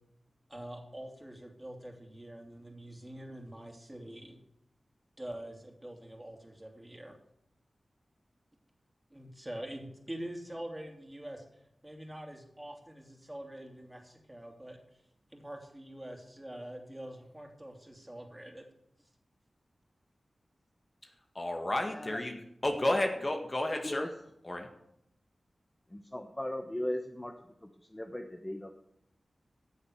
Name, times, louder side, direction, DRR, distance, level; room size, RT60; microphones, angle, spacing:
voice 1, 0.5-4.4 5.2-7.2 9.1-11.4 11.8-14.8 15.3-18.7, right 1 dB, 15° right, 2 dB, 3.0 m, -45 dB
voice 2, 21.4-22.4 22.6-24.1 24.5-24.7, left 1 dB, 35° left, 4 dB, 1.8 m, -31 dB
voice 3, 25.9-27.3 27.6-28.7, left 1 dB, 20° left, 4 dB, 1.1 m, -38 dB
14.0 x 7.1 x 6.5 m, 0.75 s
cardioid pair, 50°, 0 cm